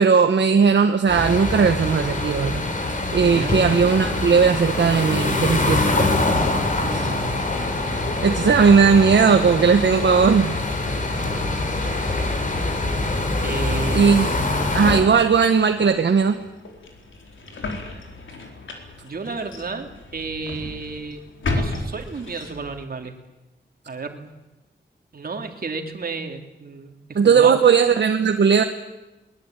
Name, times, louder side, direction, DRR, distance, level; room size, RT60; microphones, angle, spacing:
voice 1, 0.0-2.6 3.1-6.1 6.9-7.1 8.2-10.6 13.9-14.3 14.7-16.4 27.1-28.6, right 6 dB, 65° right, 6 dB, 1.3 m, -17 dB
sound 1, 1.1-15.0, left 2 dB, 45° left, 3.9 m, -24 dB
voice 2, 3.2-3.5 6.8-7.3 11.1-11.5 13.4-14.3 19.0-21.2 21.5-23.1 23.9-24.3 25.1-27.0 27.2-27.6, right 4 dB, 50° right, 5 dB, 2.9 m, -32 dB
sound 2, 15.4-22.8, left 2 dB, 90° left, 4.3 m, -34 dB
22.5 x 21.0 x 9.1 m, 1.0 s
wide cardioid pair, 155°, 19 cm